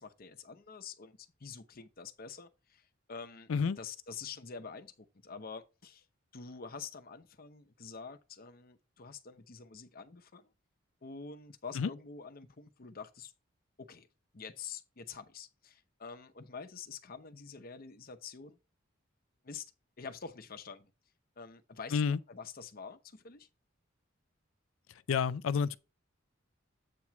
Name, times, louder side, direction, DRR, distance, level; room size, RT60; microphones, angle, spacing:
voice 1, 0.0-3.5 3.8-6.1 6.3-10.5 11.0-13.3 13.8-14.1 14.3-18.6 19.4-19.7 20.0-20.9 21.4-22.0 22.3-23.5, left 5 dB, 50° left, 0.8 m, -47 dB
voice 2, 25.1-25.8, left 6 dB, 80° left, 0.4 m, -29 dB
8.4 x 3.1 x 5.8 m
head